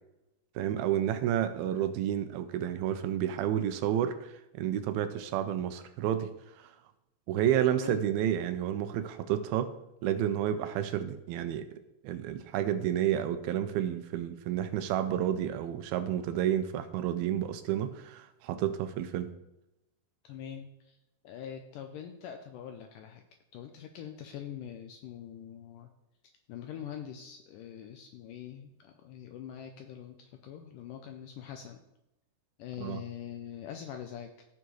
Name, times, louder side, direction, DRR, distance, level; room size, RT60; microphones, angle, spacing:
voice 1, 0.6-6.3 6.6-6.7 7.3-9.7 10.0-19.3 32.8-33.0, right 10 dB, 85° right, 9 dB, 2.5 m, -30 dB
voice 2, 7.7-8.0 20.2-21.0 21.2-23.2 23.5-25.9 26.5-31.8 32.6-34.5, left 9 dB, 85° left, 5 dB, 1.9 m, -43 dB
15.5 x 5.9 x 3.1 m, 0.89 s
omnidirectional pair, 4.4 m